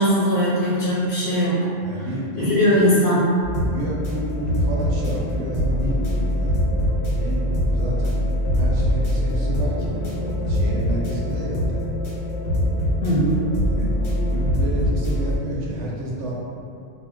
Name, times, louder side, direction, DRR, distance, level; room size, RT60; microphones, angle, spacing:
voice 1, 0.0-1.6 2.4-3.2 13.0-13.5, equal, 50° left, -9 dB, 0.9 m, -19 dB
voice 2, 1.8-3.1 3.7-6.6 7.2-8.2 8.6-11.8 13.7-13.9 14.3-16.3, right 1 dB, 80° right, -4 dB, 0.9 m, -30 dB
sound 1, 3.4-15.4, equal, 75° left, 1.0 m, -23 dB
2.3 x 2.1 x 3.7 m, 2.4 s
omnidirectional pair, 1.2 m